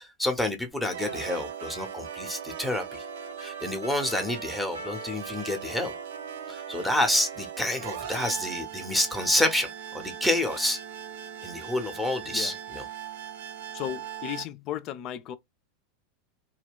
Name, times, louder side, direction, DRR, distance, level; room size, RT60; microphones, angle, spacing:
voice 1, 0.0-3.0 3.4-5.9 6.5-10.8 11.4-12.9, left 1 dB, ahead, 0.7 m, -28 dB
sound 1, 0.7-14.4, right 9 dB, 60° right, 0.4 m, -39 dB
Trumpet, 1.0-8.4, right 1 dB, 80° right, 0.8 m, -44 dB
voice 2, 13.7-15.4, left 11 dB, 40° left, 0.3 m, -35 dB
2.2 x 2.2 x 3.4 m
figure-of-eight pair, 85°, 0 cm